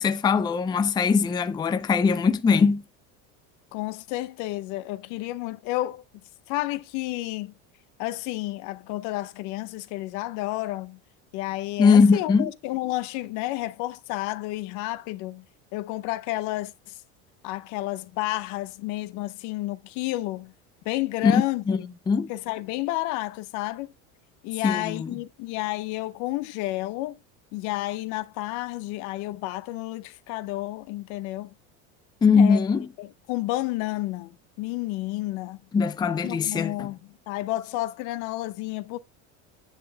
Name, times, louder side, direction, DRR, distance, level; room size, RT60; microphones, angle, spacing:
voice 1, 0.0-2.8 11.8-12.5 21.2-22.3 24.6-25.1 32.2-32.9 35.7-36.9, left 5 dB, 10° left, 0.5 m, -21 dB
voice 2, 3.7-6.0 6.5-7.5 8.0-11.0 11.3-15.5 15.7-16.7 17.4-20.5 20.8-21.9 22.3-23.9 24.4-27.2 27.5-31.5 32.4-32.6 33.0-35.6 36.2-37.0 37.3-39.0, left 17 dB, 60° left, 0.7 m, -31 dB
9.8 x 5.3 x 3.3 m
supercardioid pair, 135°, 35 cm